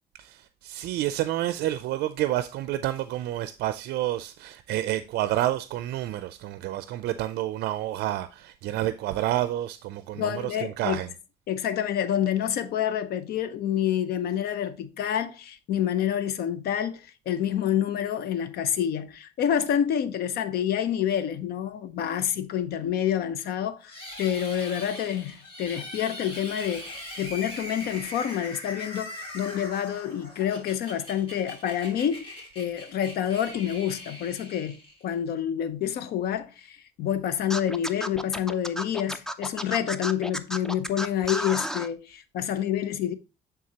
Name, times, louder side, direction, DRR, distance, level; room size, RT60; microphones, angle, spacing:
voice 1, 0.2-11.1, right 14 dB, 70° right, 0.4 m, -29 dB
voice 2, 10.1-11.0 11.5-43.1, left 10 dB, 65° left, 0.7 m, -28 dB
sound 1, 23.9-35.2, left 1 dB, 30° left, 2.8 m, -41 dB
Scratching (performance technique), 37.5-41.9, equal, 5° left, 0.4 m, -32 dB
9.3 x 3.8 x 2.9 m
cardioid pair, 110°, 17 cm